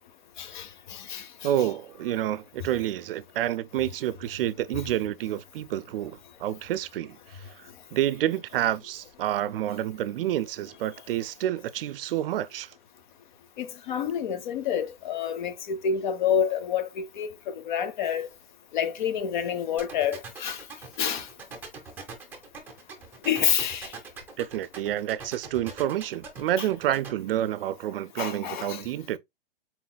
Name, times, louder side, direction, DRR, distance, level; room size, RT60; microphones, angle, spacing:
voice 1, 0.4-1.5 13.6-18.3 18.7-20.6 21.0-21.3 23.2-23.9 26.6-26.7 28.2-28.8, left 8 dB, 55° left, 0.7 m, -28 dB
voice 2, 1.4-12.7 24.4-29.2, right 12 dB, 70° right, 0.4 m, -29 dB
sound 1, 19.8-27.1, right 5 dB, 5° right, 0.7 m, -41 dB
4.1 x 4.0 x 2.2 m
hypercardioid pair, 165°, 29 cm